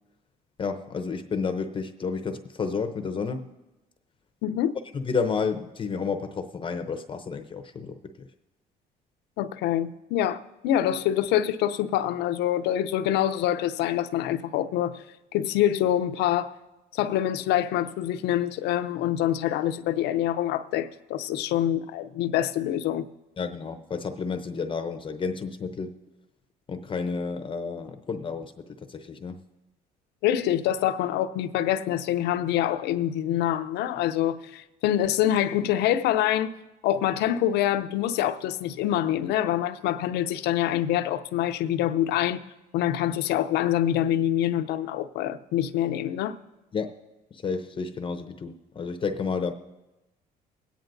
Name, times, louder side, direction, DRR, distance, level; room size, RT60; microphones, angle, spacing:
voice 1, 0.6-3.5 5.1-8.0 23.4-25.9 26.7-28.5 28.9-29.4 46.7-46.9 47.4-49.5, left 5 dB, 30° left, 0.6 m, -31 dB
voice 2, 4.4-4.7 9.4-10.4 10.6-15.0 15.3-16.5 16.9-23.1 30.2-36.5 36.8-42.4 42.7-46.4, left 11 dB, 85° left, 0.6 m, -25 dB
22.5 x 9.1 x 2.6 m
cardioid pair, 110°, 17 cm